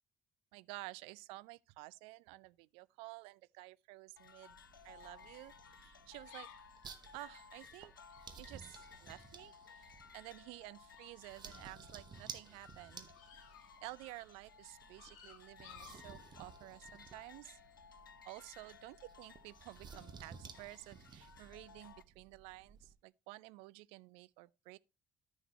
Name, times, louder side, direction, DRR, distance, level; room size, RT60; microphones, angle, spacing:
voice 1, 0.5-4.6 4.8-6.5 7.1-7.9 8.4-17.6 18.2-24.8, right 21 dB, 60° right, 0.4 m, -52 dB
sound 1, 4.2-22.0, left 7 dB, 85° left, 0.4 m, -59 dB
sound 2, 4.5-22.9, right 6 dB, 40° right, 1.2 m, -56 dB
sound 3, 6.1-10.0 10.3-11.2 11.5-12.0 12.5-14.1 14.5-17.0 17.5-18.0 18.5-19.0 19.5-20.0 20.5-20.8, left 10 dB, 65° left, 1.3 m, -62 dB
13.5 x 6.4 x 2.7 m
figure-of-eight pair, 50°, 11 cm